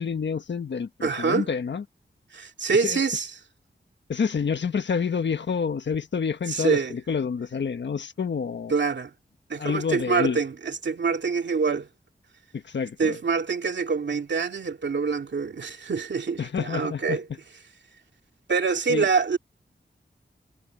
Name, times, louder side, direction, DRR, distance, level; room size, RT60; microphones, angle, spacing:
voice 1, 0.0-1.8 2.8-3.0 4.1-8.7 9.6-10.4 12.5-13.2 16.4-17.2 18.9-19.1, left 6 dB, 85° left, 1.3 m, -28 dB
voice 2, 1.0-1.5 2.3-3.3 6.5-6.9 8.7-9.1 9.5-11.9 13.0-17.2 18.5-19.4, right 5 dB, 80° right, 2.5 m, -25 dB
wide cardioid pair, 95°, 18 cm